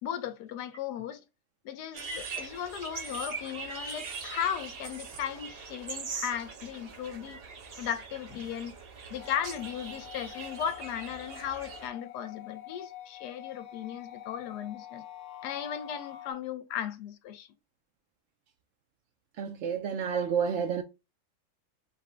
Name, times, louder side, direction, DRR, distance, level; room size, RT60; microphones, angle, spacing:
voice 1, 0.0-1.2 1.6-7.4 7.8-8.7 9.1-15.0 15.4-17.5, left 9 dB, 80° left, 1.2 m, -36 dB
sound 1, 1.9-11.9, right 5 dB, 45° right, 0.8 m, -41 dB
sound 2, 9.2-16.3, left 12 dB, 65° left, 0.8 m, -47 dB
voice 2, 19.4-20.8, right 7 dB, 70° right, 0.6 m, -30 dB
5.3 x 2.1 x 3.7 m
omnidirectional pair, 1.7 m